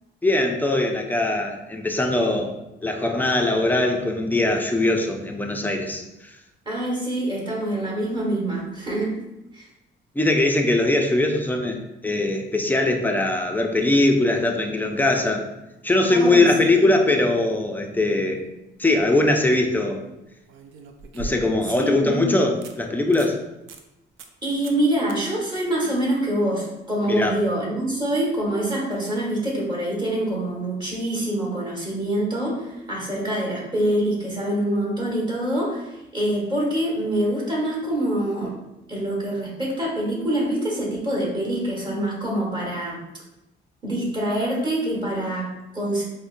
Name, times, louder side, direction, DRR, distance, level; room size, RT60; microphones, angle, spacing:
voice 1, 0.2-2.6 2.8-6.0 10.2-15.5 15.8-18.4 18.8-20.0 21.1-23.4 27.1-27.4, left 2 dB, 10° left, 3 dB, 0.4 m, -21 dB
voice 2, 6.6-9.2 9.5-9.7 16.1-16.4 16.7-16.9 21.7-22.3 24.4-38.5 38.9-43.0 43.8-46.0, right 1 dB, 20° right, -3 dB, 1.4 m, -25 dB
sound 1, 18.8-19.1 20.5-21.8 22.2-22.3 22.6-22.7 23.1-23.4 23.7-23.8 24.2-24.4 24.6-24.8 25.1-25.2 28.3-28.4, right 3 dB, 85° right, 0.4 m, -38 dB
5.0 x 2.1 x 2.5 m, 0.93 s
cardioid pair, 90°, 20 cm